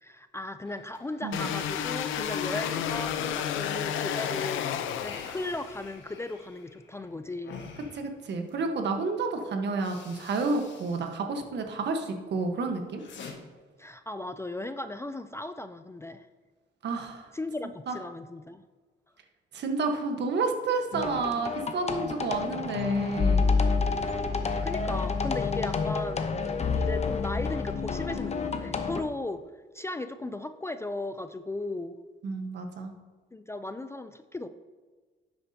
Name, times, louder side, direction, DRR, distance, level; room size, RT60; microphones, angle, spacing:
voice 1, 0.0-4.7 5.0-7.6 13.8-16.3 17.3-18.6 24.6-26.2 26.7-29.4 29.7-32.0 33.3-34.5, left 2 dB, 15° left, 10 dB, 0.3 m, -36 dB
sound 1, 0.6-4.3 4.6-8.7 9.3-9.4 9.7-11.1 11.4-12.0 12.4-13.3, left 5 dB, 65° left, 1.5 m, -48 dB
sound 2, 1.3-5.9, left 9 dB, 85° left, 0.6 m, -31 dB
voice 2, 7.9-13.0 16.8-17.3 17.9-18.0 19.5-23.5 32.2-32.9, right 3 dB, 60° right, 5 dB, 1.2 m, -30 dB
sound 3, 20.9-29.0, left 4 dB, 35° left, 0.8 m, -28 dB
10.0 x 7.8 x 2.8 m, 1.4 s
cardioid pair, 90°, 20 cm